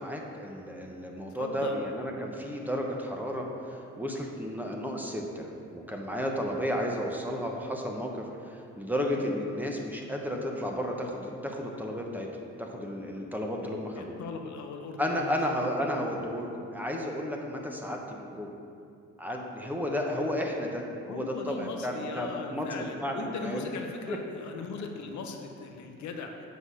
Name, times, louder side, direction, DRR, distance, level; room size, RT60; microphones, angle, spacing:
voice 1, 0.0-12.3 12.6-14.1 15.0-18.5 19.2-23.7 24.1-24.2, equal, 5° right, 0 dB, 1.0 m, -33 dB
voice 2, 1.3-1.8 14.0-15.4 21.1-26.5, left 4 dB, 70° left, 3 dB, 0.8 m, -38 dB
7.7 x 4.1 x 6.3 m, 2.5 s
cardioid pair, 90°, 30 cm